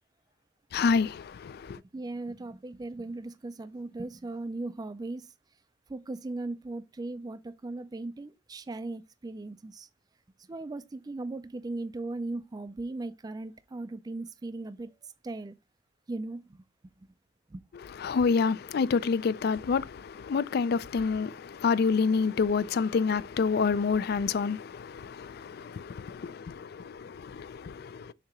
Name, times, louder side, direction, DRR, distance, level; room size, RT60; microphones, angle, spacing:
voice 1, 0.7-1.8 17.7-28.1, left 5 dB, 55° left, 0.4 m, -28 dB
voice 2, 1.9-5.3 5.9-9.9 10.5-14.9 15.2-15.5 16.1-16.4 17.5-17.6, right 2 dB, 20° right, 0.3 m, -37 dB
6.6 x 2.9 x 5.7 m
head